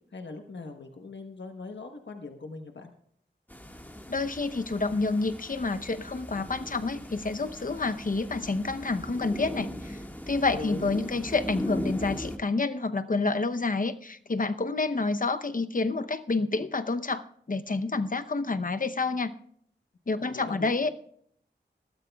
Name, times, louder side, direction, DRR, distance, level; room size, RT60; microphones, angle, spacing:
voice 1, 0.1-2.9 10.5-10.8 20.2-20.7, left 3 dB, 70° left, 5 dB, 1.2 m, -40 dB
sound 1, 3.5-12.4, equal, 10° left, 1.7 m, -39 dB
voice 2, 4.1-10.0 10.3-17.2 17.5-19.3 20.1-20.9, left 3 dB, 45° left, 10 dB, 0.8 m, -28 dB
20.5 x 13.0 x 2.3 m, 0.64 s
wide cardioid pair, 50°, 19 cm